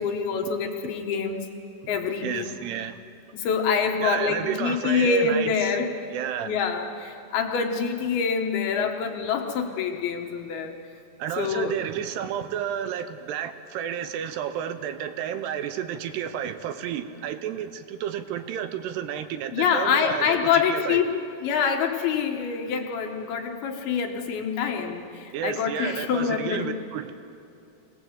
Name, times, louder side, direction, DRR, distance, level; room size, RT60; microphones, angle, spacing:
voice 1, 0.0-1.5 1.9-2.5 3.3-5.9 6.4-10.7 11.4-11.8 19.5-21.1 21.4-26.7, left 6 dB, 70° left, 3 dB, 3.0 m, -26 dB
voice 2, 2.2-3.0 4.0-5.7 6.1-6.5 11.2-20.4 20.7-21.0 25.3-27.1, right 9 dB, 80° right, 10 dB, 2.8 m, -31 dB
24.5 x 18.0 x 7.9 m, 2.6 s
omnidirectional pair, 5.0 m